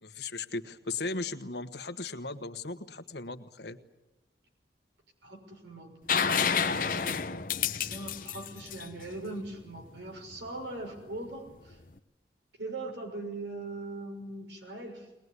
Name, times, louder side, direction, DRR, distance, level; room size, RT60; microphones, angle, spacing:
voice 1, 0.0-3.8, left 3 dB, 70° left, 9 dB, 1.4 m, -37 dB
voice 2, 5.2-5.9 6.3-7.3 7.8-11.8 12.6-15.1, right 2 dB, 85° right, 3 dB, 6.0 m, -41 dB
sound 1, 6.1-9.8 11.7-11.8, left 7 dB, 50° left, 0.9 m, -29 dB
22.0 x 20.5 x 9.8 m, 1.0 s
head